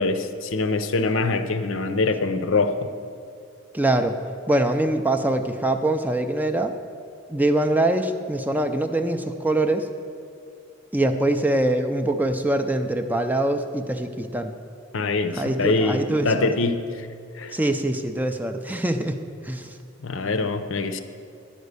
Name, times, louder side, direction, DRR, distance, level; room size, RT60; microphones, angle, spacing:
voice 1, 0.0-2.9 14.9-17.1 17.4-17.6 20.0-21.0, left 3 dB, 60° left, 9 dB, 0.6 m, -24 dB
voice 2, 3.7-4.2 4.5-6.7 7.3-9.9 10.9-14.5 15.3-16.5 17.5-19.8, right 1 dB, 10° right, 6 dB, 0.4 m, -23 dB
11.0 x 5.2 x 8.2 m, 2.3 s
head